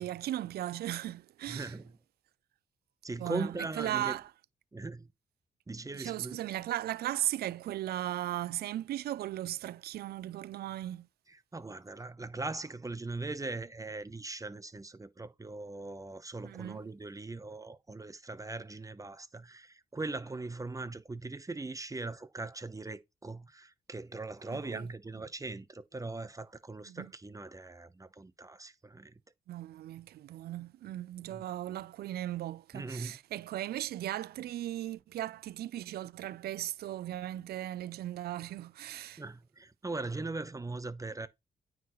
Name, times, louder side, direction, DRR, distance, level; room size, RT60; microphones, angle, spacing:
voice 1, 0.0-1.7 3.2-4.2 5.9-11.1 16.4-16.8 24.7-24.8 26.9-27.1 29.5-39.2, right 13 dB, 80° right, 0.4 m, -37 dB
voice 2, 1.5-1.9 3.0-4.2 4.7-5.1 5.7-6.4 11.3-29.1 31.3-31.4 32.7-33.2 39.2-41.3, right 3 dB, 20° right, 0.8 m, -40 dB
9.2 x 4.8 x 3.1 m
cardioid pair, 75°, 16 cm